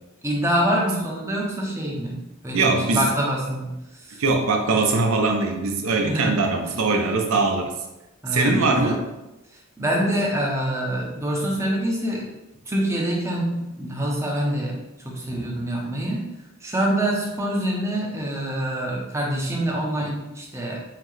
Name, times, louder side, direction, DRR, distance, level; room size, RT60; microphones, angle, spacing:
voice 1, 0.2-4.2 6.0-6.5 8.2-9.0 9.5-12.4 12.7-16.2 16.6-20.8, right 1 dB, 10° right, -2 dB, 0.7 m, -26 dB
voice 2, 2.5-3.1 4.2-7.7 8.3-9.0, right 3 dB, 65° right, 3 dB, 0.6 m, -21 dB
5.7 x 2.1 x 3.1 m, 0.96 s
head